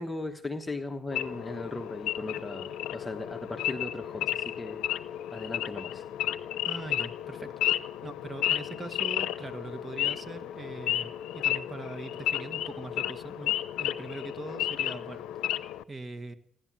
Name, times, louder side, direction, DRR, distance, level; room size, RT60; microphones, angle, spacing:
voice 1, 0.0-4.8 5.3-6.0, left 2 dB, 15° left, 5 dB, 1.2 m, -37 dB
Wild animals / Idling, 1.1-15.8, left 12 dB, 90° left, 0.6 m, -32 dB
voice 2, 6.6-13.5 13.8-16.3, right 2 dB, 25° right, 10 dB, 1.6 m, -42 dB
16.5 x 11.0 x 7.5 m, 0.68 s
cardioid pair, 90°, 0 cm